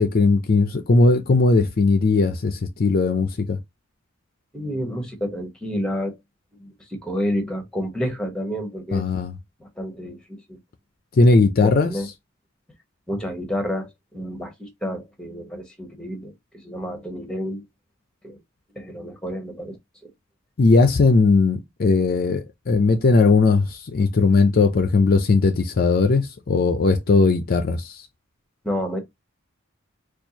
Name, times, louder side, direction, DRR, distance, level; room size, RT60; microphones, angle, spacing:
voice 1, 0.0-3.6 8.9-9.3 11.1-11.9 20.6-28.0, left 3 dB, 45° left, 0.4 m, -18 dB
voice 2, 4.5-6.2 6.6-9.1 9.6-10.6 11.6-12.1 13.1-17.6 18.2-18.4 18.7-19.8 20.0-20.1 28.6-29.0, equal, 5° left, 1.0 m, -30 dB
4.3 x 2.4 x 2.7 m
head